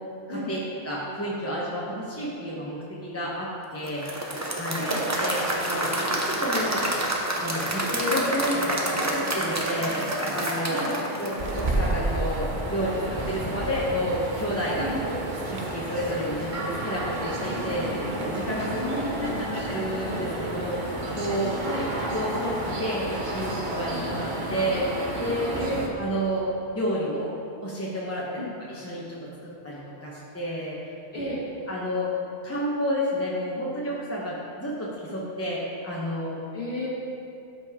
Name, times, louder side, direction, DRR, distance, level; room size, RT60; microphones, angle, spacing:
voice 1, 0.3-0.6 0.8-4.1 4.6-4.9 5.2-5.4 5.7-6.8 7.4-10.8 11.2-15.1 15.5-19.0 19.4-21.7 22.1-24.9 25.2-25.5 25.9-26.4 26.7-27.3 27.6-30.9 31.2-31.3 31.7-32.1 32.4-36.4, equal, 15° left, -7 dB, 1.0 m, -30 dB
Applause / Crowd, 3.9-12.0, right 1 dB, 20° right, 0.8 m, -28 dB
sound 1, 11.4-25.9, right 1 dB, 50° right, 1.1 m, -31 dB
voice 2, 18.8-19.5 21.6-21.9 25.6-25.8 28.4-28.5 31.1-31.4 36.5-36.9, left 1 dB, 80° left, -9 dB, 2.3 m, -32 dB
13.0 x 5.3 x 3.7 m, 2.7 s
omnidirectional pair, 1.0 m